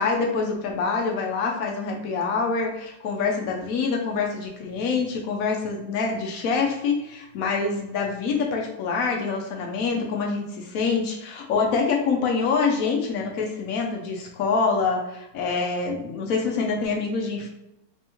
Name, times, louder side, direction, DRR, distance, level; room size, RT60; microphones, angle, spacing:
voice 1, 0.0-17.5, left 4 dB, 85° left, 1 dB, 0.7 m, -25 dB
3.4 x 3.0 x 3.4 m, 0.89 s
omnidirectional pair, 2.2 m